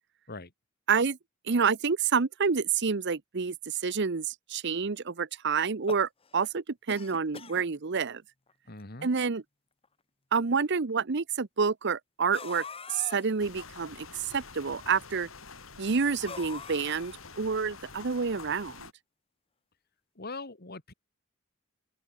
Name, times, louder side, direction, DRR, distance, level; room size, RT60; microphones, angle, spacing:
voice 1, 1.5-8.2 9.0-9.4 10.3-12.6 12.9-15.3 15.8-18.9, right 5 dB, 55° right, 0.8 m, -28 dB
sound 1, 5.6-6.5 6.9-7.6 8.5-8.6 8.8-8.9 9.8-9.9 12.3-13.4 16.2-17.4, left 5 dB, 25° left, 1.4 m, -43 dB
voice 2, 8.7-9.1 20.2-20.9, left 3 dB, 50° left, 2.8 m, -41 dB
sound 2, 13.4-18.9, left 4 dB, 75° left, 4.6 m, -47 dB
open air
head